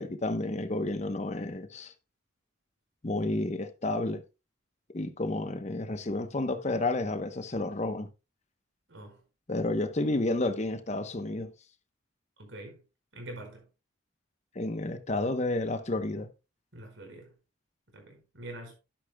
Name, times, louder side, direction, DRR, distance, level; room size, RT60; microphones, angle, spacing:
voice 1, 0.0-1.9 3.0-4.2 4.9-8.1 9.5-11.5 14.5-16.3, left 2 dB, 35° left, 0.9 m, -31 dB
voice 2, 8.9-9.2 12.4-12.8 13.1-13.7 16.7-17.3 17.9-18.7, right 1 dB, 70° right, 5.0 m, -45 dB
12.0 x 10.5 x 2.2 m
head